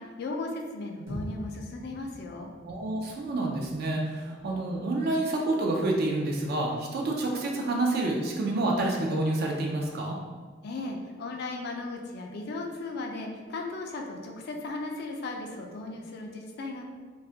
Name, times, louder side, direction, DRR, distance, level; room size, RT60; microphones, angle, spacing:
voice 1, 0.0-2.5 10.6-16.8, left 2 dB, 55° left, 2 dB, 0.3 m, -36 dB
sound 1, 1.1-5.4, equal, 75° right, 0.8 m, -44 dB
voice 2, 2.7-10.2, right 2 dB, 55° right, 0 dB, 0.3 m, -28 dB
2.3 x 2.0 x 2.6 m, 1.5 s
head